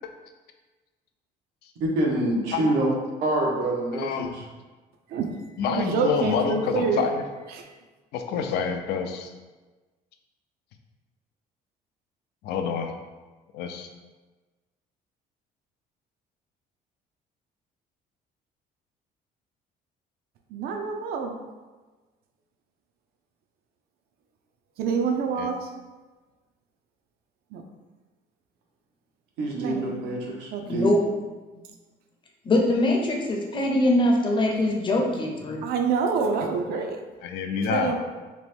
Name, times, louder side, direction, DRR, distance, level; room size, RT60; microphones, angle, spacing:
voice 1, 1.8-2.9 3.2-4.4 29.4-30.9, right 1 dB, 90° right, -2 dB, 0.7 m, -26 dB
voice 2, 3.9-4.4 5.6-7.2 8.1-9.3 12.4-12.9 13.5-13.9 25.4-25.5 36.7-36.9 37.2-38.0, left 6 dB, 75° left, 5 dB, 0.4 m, -28 dB
voice 3, 5.1-7.0 7.5-7.7 20.5-21.4 24.8-25.7 27.5-27.6 29.5-30.0 30.5-30.6 35.6-37.0 37.7-38.0, right 5 dB, 65° right, 4 dB, 0.4 m, -27 dB
voice 4, 30.6-31.0 31.5-31.6 32.4-35.6, left 1 dB, 30° left, 0 dB, 0.6 m, -23 dB
2.9 x 2.1 x 3.3 m, 1.3 s
cardioid pair, 110°, 17 cm